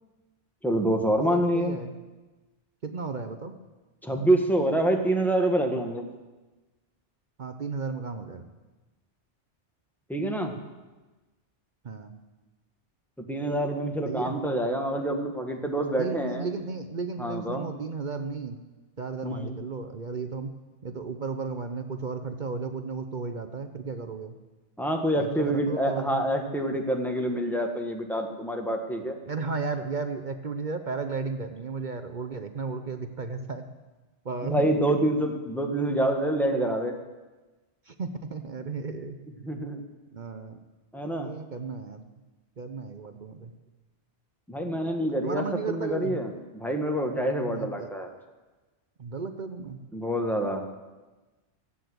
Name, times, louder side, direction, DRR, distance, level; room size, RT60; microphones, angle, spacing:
voice 1, 0.6-1.8 4.0-6.0 10.1-10.5 13.3-16.5 17.2-17.7 19.2-19.5 24.8-29.2 34.4-36.9 39.4-39.8 40.9-41.3 44.5-48.1 49.9-50.6, right 1 dB, ahead, 3 dB, 1.6 m, -26 dB
voice 2, 1.3-1.9 2.8-3.6 7.4-8.5 11.8-12.1 14.1-14.4 16.0-18.6 19.0-20.5 20.8-24.4 25.2-26.1 29.2-33.6 34.2-34.7 37.8-39.2 40.1-40.6 41.2-42.0 42.6-43.5 45.2-46.2 47.5-47.9 49.0-49.9, right 4 dB, 45° right, 7 dB, 0.9 m, -34 dB
15.5 x 9.1 x 7.9 m, 1.2 s
omnidirectional pair, 1.2 m